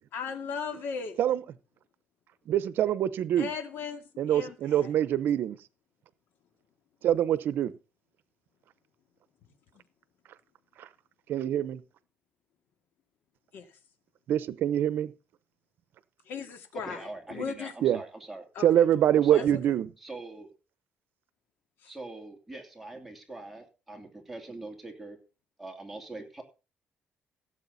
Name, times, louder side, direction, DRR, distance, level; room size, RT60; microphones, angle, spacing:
voice 1, 0.1-1.2 3.4-4.0 4.3-4.9 13.5-13.6 16.3-17.7 18.6-18.9 19.3-19.4, left 5 dB, 80° left, 2.2 m, -37 dB
voice 2, 2.5-3.5 4.2-5.6 7.0-7.7 11.3-11.8 14.3-15.1 17.8-18.0 18.6-19.9, right 11 dB, 75° right, 0.8 m, -24 dB
voice 3, 16.8-18.4 19.1-19.5 20.0-20.5 21.9-25.2 25.6-26.4, right 2 dB, 5° right, 2.9 m, -42 dB
16.5 x 7.8 x 4.1 m
cardioid pair, 125°, 4 cm